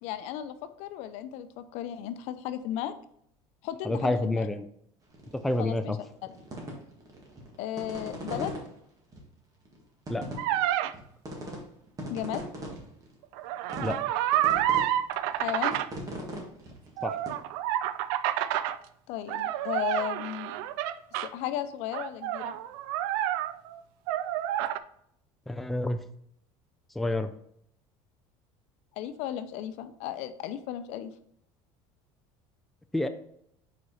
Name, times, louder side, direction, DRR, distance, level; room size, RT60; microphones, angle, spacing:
voice 1, 0.0-2.9 3.6-4.5 5.6-6.0 6.2-6.4 7.6-8.5 12.1-12.4 15.4-15.8 19.1-20.5 21.1-22.5 29.0-31.1, left 11 dB, 70° left, 11 dB, 0.5 m, -35 dB
voice 2, 3.9-4.6 5.3-6.0 10.1-10.3 13.8-14.0 17.0-17.2 25.5-26.0 27.0-27.3 32.9-33.1, left 1 dB, ahead, 7 dB, 0.4 m, -28 dB
sound 1, 5.1-5.6 6.0-8.6 9.1-9.2 9.7-9.8 10.1-11.0 11.2-11.6 11.9-13.1 13.7-14.1 14.3-14.8 15.2-17.3, right 1 dB, 30° right, 1.7 m, -38 dB
sound 2, 10.4-10.9 13.3-15.9 17.0-18.8 19.3-21.3 21.9-23.8 24.1-24.8, right 12 dB, 85° right, 0.4 m, -29 dB
5.0 x 4.7 x 4.1 m, 0.69 s
cardioid pair, 125°, 12 cm